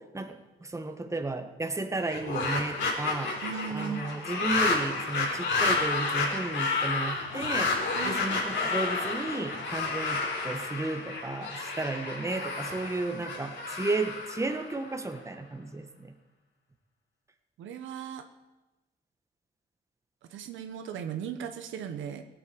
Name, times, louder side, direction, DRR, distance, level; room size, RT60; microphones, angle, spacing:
voice 1, 0.0-16.1, right 2 dB, 15° right, 6 dB, 1.5 m, -33 dB
sound 1, 2.0-15.2, left 3 dB, 65° left, 4.1 m, -31 dB
voice 2, 3.4-4.0 7.9-8.3 17.6-18.2 20.3-22.2, right 8 dB, 80° right, 7 dB, 1.2 m, -37 dB
17.0 x 8.5 x 7.0 m, 1.1 s
cardioid pair, 90°, 20 cm